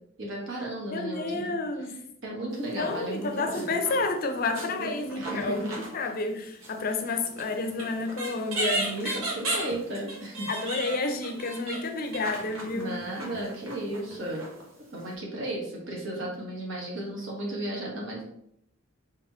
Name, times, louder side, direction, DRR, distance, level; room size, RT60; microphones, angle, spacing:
voice 1, 0.2-1.5 2.2-3.7 4.7-4.9 5.1-5.6 8.7-10.5 12.7-14.4 14.9-18.3, right 1 dB, 60° right, -3 dB, 1.3 m, -34 dB
voice 2, 0.9-2.0 2.5-9.2 10.5-13.0, left 3 dB, 45° left, 5 dB, 0.5 m, -30 dB
sound 1, 2.5-3.0 3.3-6.3 6.6-14.7 15.1-15.2, right 1 dB, 90° right, 1.1 m, -36 dB
3.6 x 3.0 x 3.5 m, 0.72 s
head